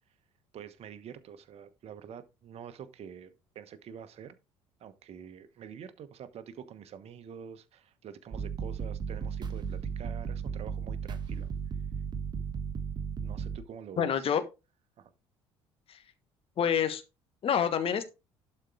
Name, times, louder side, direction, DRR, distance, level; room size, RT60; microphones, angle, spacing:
voice 1, 0.5-4.3 4.8-11.5 13.2-14.3 15.0-15.1, right 8 dB, 45° right, 1.2 m, -46 dB
sound 1, 8.3-13.6, right 6 dB, 30° right, 1.3 m, -35 dB
voice 2, 14.0-14.4 15.9-16.0 16.6-17.0 17.4-18.1, left 8 dB, 40° left, 1.3 m, -27 dB
11.5 x 4.5 x 4.7 m
figure-of-eight pair, 55°, 14 cm